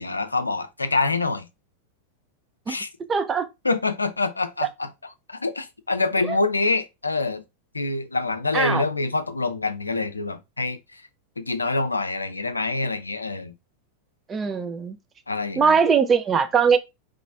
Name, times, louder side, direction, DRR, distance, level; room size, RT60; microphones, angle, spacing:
voice 1, 0.0-1.5 2.7-2.9 3.6-4.9 5.3-7.4 7.7-11.0 11.4-13.5 15.3-15.8, left 3 dB, 80° left, 0.5 m, -26 dB
voice 2, 3.1-3.5 6.3-6.4 8.5-8.8 14.3-15.0 15.6-16.8, right 6 dB, 20° right, 0.7 m, -21 dB
4.1 x 3.2 x 3.5 m
figure-of-eight pair, 90°, 0 cm